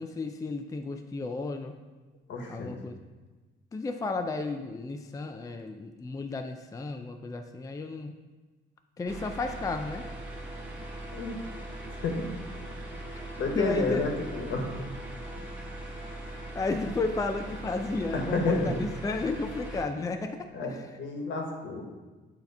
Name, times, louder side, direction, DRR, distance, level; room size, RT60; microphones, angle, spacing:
voice 1, 0.0-1.7 2.5-2.9 3.7-8.1 9.0-10.0 13.5-14.0 16.3-20.4 20.7-20.8, left 3 dB, 15° left, 6 dB, 0.4 m, -33 dB
voice 2, 2.3-2.7 11.1-11.4 12.0-12.2 13.4-14.8 18.1-18.7 20.5-20.7 21.0-21.8, left 3 dB, 70° left, 2 dB, 1.2 m, -30 dB
sound 1, 9.1-19.9, right 1 dB, 5° right, 1.4 m, -40 dB
8.1 x 2.9 x 5.3 m, 1.3 s
cardioid pair, 90°, 20 cm